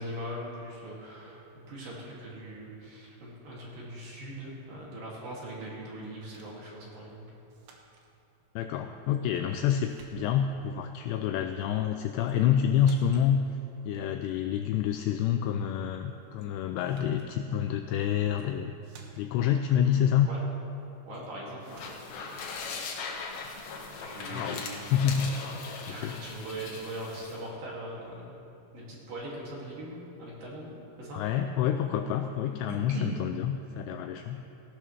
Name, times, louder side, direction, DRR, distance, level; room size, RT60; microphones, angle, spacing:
voice 1, 0.0-1.4 1.7-7.3 20.3-20.4 21.0-21.9 24.0-24.8 25.9-28.3 28.7-31.2 32.9-33.1, right 1 dB, 55° right, -5 dB, 3.5 m, -40 dB
sound 1, 6.3-6.6 7.5-8.1 9.1-9.6 9.9-10.6 12.2-12.4 12.7-13.3 16.4-16.5 16.8-17.3 18.2-18.5 18.8-19.4 21.1-21.3 21.6-22.1, right 4 dB, 75° right, 3.3 m, -56 dB
voice 2, 8.6-13.4 13.9-18.7 19.2-20.3 24.3-25.3 25.9-26.2 31.1-34.4, left 9 dB, 85° left, 6 dB, 2.5 m, -28 dB
sound 2, 21.6-27.4, left 4 dB, 65° left, 2.6 m, -39 dB
18.0 x 15.0 x 3.2 m, 2.9 s
omnidirectional pair, 5.4 m